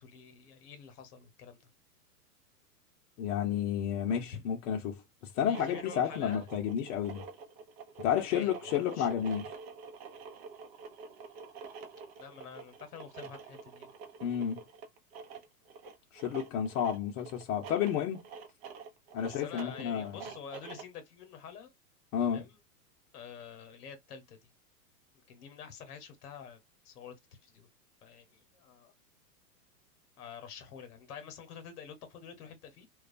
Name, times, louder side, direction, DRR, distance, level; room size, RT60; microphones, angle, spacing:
voice 1, 0.0-1.6 4.1-4.4 5.4-6.5 8.1-9.1 12.2-13.9 19.2-21.7 22.3-22.6 23.1-24.5 25.3-26.6 26.8-27.1 27.4-27.7 28.0-28.9 30.2-32.9, left 7 dB, 75° left, 1.0 m, -48 dB
voice 2, 3.2-5.0 5.3-7.2 8.0-9.4 14.2-14.6 16.1-18.3 19.1-20.2 22.1-22.4, left 9 dB, 55° left, 0.7 m, -31 dB
sound 1, 5.3-21.0, right 5 dB, 40° right, 0.6 m, -47 dB
2.3 x 2.3 x 2.5 m
hypercardioid pair, 125°, 46 cm